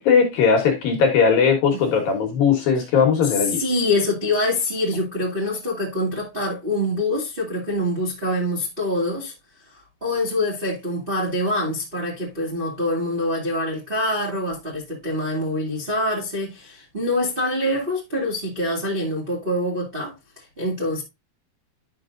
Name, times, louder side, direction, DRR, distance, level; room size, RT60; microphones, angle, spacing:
voice 1, 0.0-3.6, left 6 dB, 65° left, 2.5 m, -18 dB
voice 2, 3.5-9.3 9.6-21.0, left 1 dB, 45° right, 0.7 m, -25 dB
11.0 x 5.9 x 2.5 m
omnidirectional pair, 5.5 m